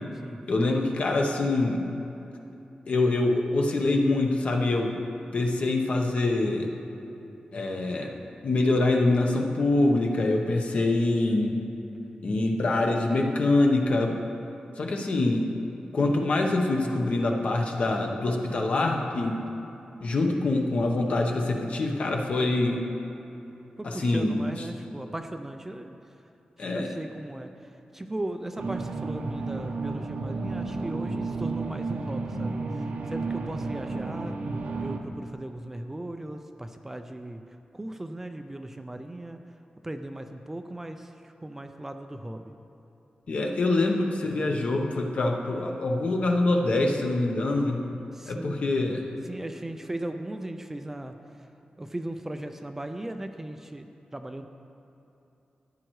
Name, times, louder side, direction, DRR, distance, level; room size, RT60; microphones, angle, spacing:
voice 1, 0.5-1.8 2.9-4.9 5.3-6.7 7.5-8.2 8.4-11.5 12.2-14.2 14.8-15.5 15.9-19.4 20.0-22.8 23.8-24.4 26.6-26.9 43.3-47.8 48.3-49.0, left 2 dB, 50° left, 2 dB, 0.9 m, -25 dB
voice 2, 23.8-26.2 26.6-34.4 34.8-39.4 39.8-42.5 48.1-48.6 49.2-51.5 51.8-54.5, right 1 dB, 15° right, 6 dB, 0.3 m, -38 dB
sound 1, 28.6-35.0, right 3 dB, 65° right, 0.6 m, -32 dB
14.5 x 9.0 x 3.1 m, 3.0 s
wide cardioid pair, 175°, 3 cm